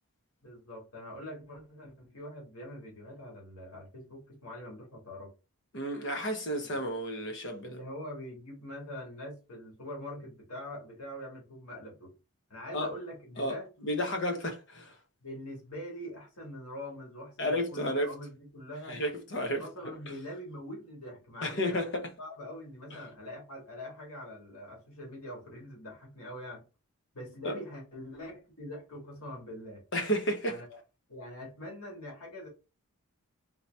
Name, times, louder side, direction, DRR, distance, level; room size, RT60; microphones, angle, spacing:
voice 1, 0.4-5.3 6.7-6.8 7.6-12.1 12.5-13.7 15.2-19.0 19.6-21.8 22.2-26.6 27.1-29.8 30.5-30.8 31.1-32.5, left 1 dB, 85° left, 1.8 m, -44 dB
voice 2, 5.7-7.7 12.7-12.9 13.4-13.6 13.8-14.9 17.4-18.1 18.9-19.9 21.4-22.0 27.4-27.5 29.9-30.6, equal, 55° left, 1.0 m, -32 dB
3.8 x 2.9 x 3.3 m
head